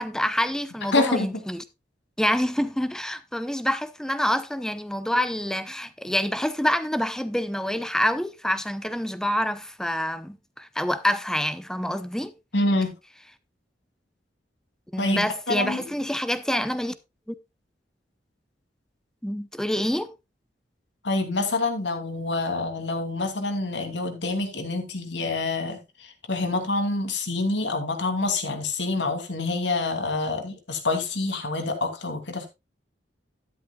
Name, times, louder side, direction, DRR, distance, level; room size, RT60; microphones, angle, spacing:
voice 1, 0.0-1.6 2.2-12.3 14.9-16.9 17.3-17.4 19.2-20.1, equal, 5° left, 0.6 m, -27 dB
voice 2, 0.9-1.3 12.5-12.9 15.0-15.8 21.0-32.5, left 2 dB, 80° left, 2.7 m, -27 dB
12.0 x 10.5 x 2.3 m
head